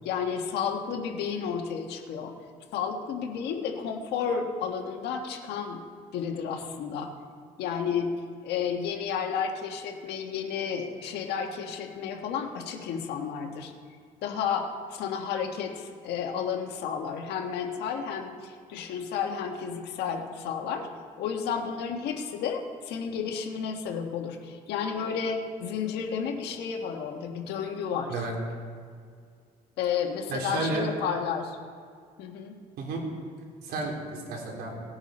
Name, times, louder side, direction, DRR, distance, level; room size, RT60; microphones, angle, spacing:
voice 1, 0.0-2.3 2.7-5.8 6.1-7.1 7.6-8.1 8.4-13.7 14.2-20.9 21.2-28.2 29.8-31.6 32.2-32.5, left 7 dB, 80° left, 3 dB, 1.5 m, -32 dB
voice 2, 30.3-30.8 32.8-33.0 33.6-34.7, right 3 dB, 65° right, -1 dB, 3.3 m, -32 dB
17.5 x 9.5 x 4.3 m, 2.1 s
cardioid pair, 110°, 17 cm